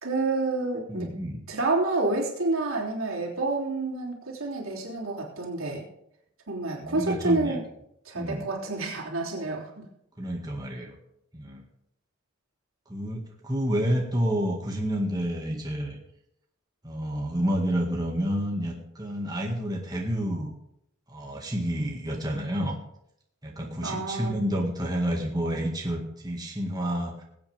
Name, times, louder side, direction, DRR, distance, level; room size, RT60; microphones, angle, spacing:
voice 1, 0.0-1.1 1.5-5.8 6.5-7.6 8.0-9.9 23.8-24.4, right 2 dB, 85° right, -2 dB, 3.2 m, -28 dB
voice 2, 0.9-1.4 6.8-7.6 8.2-8.5 10.2-11.0 11.3-11.6 12.9-16.0 16.8-20.6 21.1-22.8 23.4-27.1, equal, 20° right, -1 dB, 1.9 m, -29 dB
21.5 x 8.4 x 3.5 m, 0.78 s
head